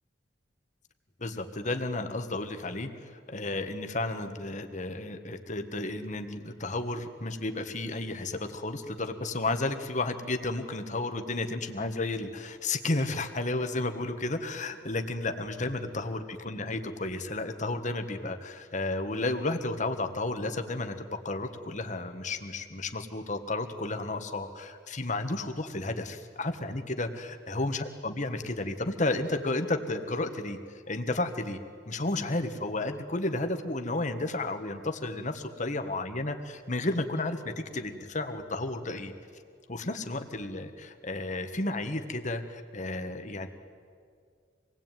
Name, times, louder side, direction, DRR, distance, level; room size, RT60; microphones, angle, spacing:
voice 1, 1.2-30.6 30.9-31.6 31.8-39.1 39.7-43.5, left 2 dB, 40° left, 7 dB, 1.6 m, -32 dB
26.5 x 19.5 x 9.2 m, 2.2 s
head